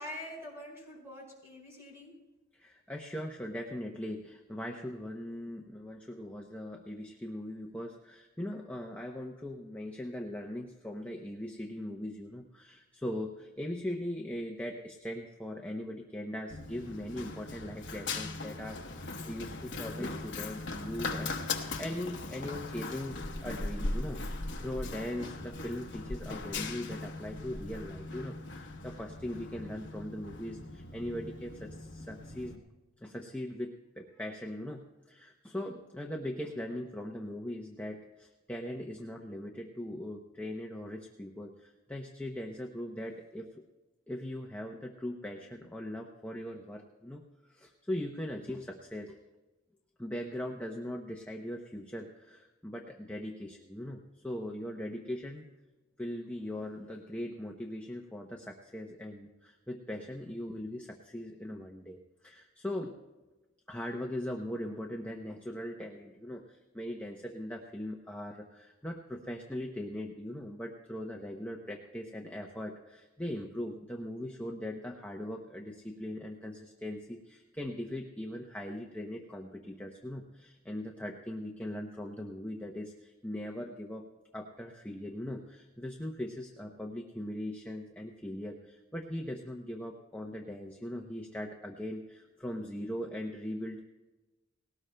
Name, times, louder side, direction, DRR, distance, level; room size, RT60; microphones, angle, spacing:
voice 1, 0.0-2.1, left 1 dB, 10° right, -3 dB, 5.0 m, -45 dB
voice 2, 2.5-32.6 33.0-43.6 44.1-47.2 47.5-49.2 50.0-55.4 56.0-63.0 63.7-84.1 84.3-93.8, left 1 dB, 5° left, 1 dB, 0.6 m, -40 dB
Run, 16.5-32.6, left 3 dB, 55° left, 1.0 m, -39 dB
20.0 x 18.0 x 2.2 m, 1.1 s
head